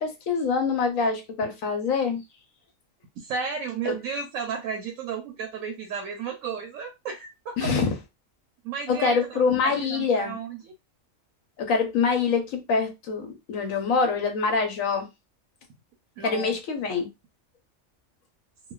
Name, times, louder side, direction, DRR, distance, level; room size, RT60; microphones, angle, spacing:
voice 1, 0.0-2.2 3.9-4.0 7.6-7.9 8.9-10.4 11.6-15.1 16.2-17.1, left 5 dB, 80° left, 1.1 m, -25 dB
voice 2, 3.2-7.7 8.6-10.7 16.2-16.5, right 6 dB, 80° right, 1.0 m, -33 dB
3.0 x 2.0 x 2.3 m
omnidirectional pair, 1.4 m